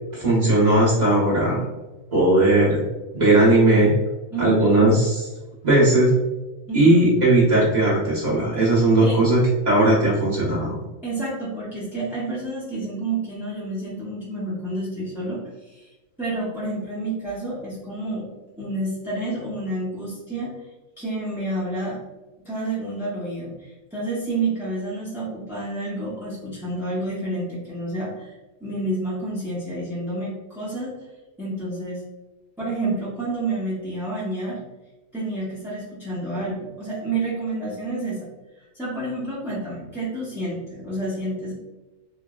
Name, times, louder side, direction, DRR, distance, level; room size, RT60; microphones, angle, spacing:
voice 1, 0.1-1.7 2.1-2.8 3.1-3.9 4.4-5.3 5.6-6.1 6.7-10.8, right 2 dB, 35° right, -6 dB, 0.8 m, -18 dB
voice 2, 4.3-4.9 6.7-7.0 9.0-9.2 11.0-18.3 18.6-20.5 21.0-22.0 22.4-28.3 28.6-30.9 31.4-32.0 32.6-34.6 35.1-38.3 38.6-41.5, right 2 dB, 5° right, -9 dB, 0.4 m, -29 dB
3.7 x 2.0 x 2.3 m, 1.1 s
omnidirectional pair, 1.5 m